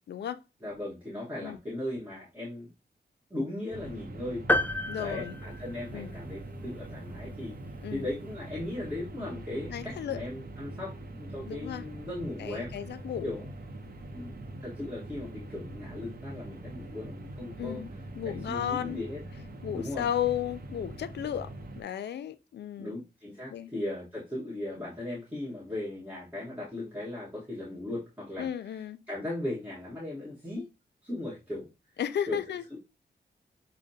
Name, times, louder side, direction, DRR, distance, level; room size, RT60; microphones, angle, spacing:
voice 1, 0.0-0.4 1.4-1.6 4.9-5.4 5.9-6.1 7.8-8.1 9.7-10.2 11.5-11.8 12.4-13.3 17.6-17.9 18.2-19.0 19.6-23.0 23.5-23.7 28.4-29.0 32.0-32.8, left 10 dB, 75° left, 0.4 m, -34 dB
voice 2, 0.6-2.7 3.3-4.5 5.0-12.8 13.2-13.5 14.1-14.3 14.6-17.8 18.2-19.2 19.7-20.1 22.8-30.6 31.0-31.7 32.3-32.4 32.7-32.8, left 1 dB, 10° right, 1.3 m, -37 dB
sound 1, 3.7-21.8, right 1 dB, 60° right, 0.7 m, -43 dB
sound 2, 4.5-6.3, left 1 dB, 10° left, 0.3 m, -30 dB
6.2 x 2.2 x 2.7 m
wide cardioid pair, 120°, 18 cm